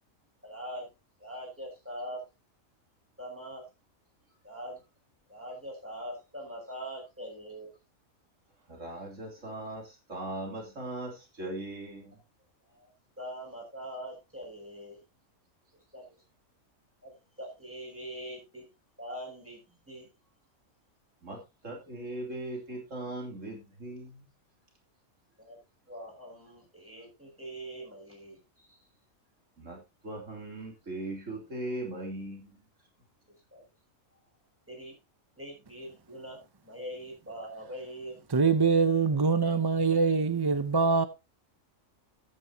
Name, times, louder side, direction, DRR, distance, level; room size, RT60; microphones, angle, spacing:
voice 1, 0.4-0.9 1.2-2.2 3.2-3.6 4.4-4.8 5.3-7.7 12.6-12.9 13.2-15.0 15.9-16.2 17.0-18.7 19.0-20.1 25.4-25.6 25.9-28.8 33.5-33.6 34.7-35.0 35.4-38.2, equal, 10° right, 7.5 m, -43 dB
voice 2, 8.7-12.2 21.2-24.2 29.6-32.6, right 1 dB, 65° right, 3.6 m, -39 dB
voice 3, 38.3-41.0, right 4 dB, 30° right, 0.4 m, -24 dB
14.0 x 9.5 x 2.9 m
omnidirectional pair, 1.4 m